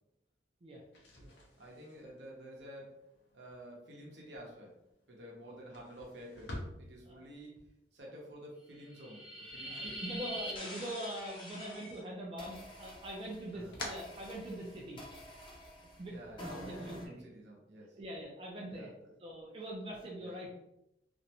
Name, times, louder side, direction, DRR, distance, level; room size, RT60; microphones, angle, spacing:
sound 1, 0.8-10.8 11.1-12.0 12.4-15.0, left 1 dB, 85° left, 0.6 m, -51 dB
voice 1, 1.6-3.0 3.3-4.7 5.1-7.6 7.9-10.2 13.5-13.8 16.1-18.0 18.7-19.1 20.2-20.4, equal, 75° right, -2 dB, 0.7 m, -50 dB
sound 2, 8.8-12.0 12.4-17.1, equal, 25° left, 0.6 m, -46 dB
voice 2, 9.7-15.0 16.0-16.1 16.6-17.3 17.9-18.9 19.2-20.5, right 1 dB, 30° right, -2 dB, 0.4 m, -43 dB
2.5 x 2.1 x 2.7 m, 0.83 s
head